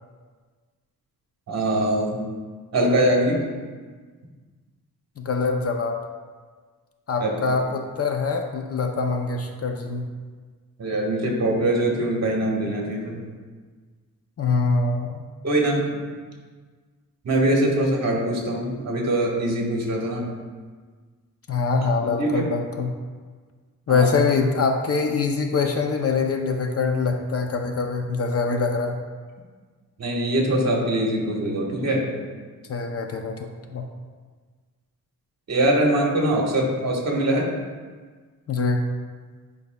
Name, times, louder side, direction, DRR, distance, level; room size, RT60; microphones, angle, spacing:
voice 1, 1.5-2.2 2.7-3.4 7.2-7.3 10.8-13.2 15.4-16.0 17.2-20.3 22.2-22.5 23.9-24.1 30.0-32.1 35.5-37.5, right 1 dB, 50° right, -1 dB, 1.3 m, -22 dB
voice 2, 5.2-6.0 7.1-10.1 14.4-15.3 21.5-22.9 23.9-29.0 32.7-33.9 38.5-38.8, left 4 dB, 45° left, 4 dB, 0.5 m, -24 dB
11.0 x 5.4 x 2.2 m, 1.5 s
wide cardioid pair, 160°, 34 cm